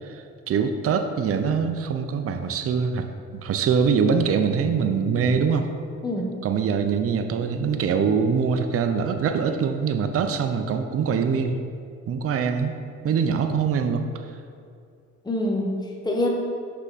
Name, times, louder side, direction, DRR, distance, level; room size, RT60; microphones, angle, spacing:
voice 1, 0.0-3.1 3.3-5.7 6.4-11.6 12.1-12.8 13.0-14.0, right 6 dB, 50° right, 7 dB, 0.6 m, -23 dB
voice 2, 6.0-6.4 15.2-16.3, left 1 dB, 15° left, -1 dB, 0.9 m, -26 dB
5.7 x 5.6 x 4.0 m, 2.3 s
cardioid pair, 90°, 30 cm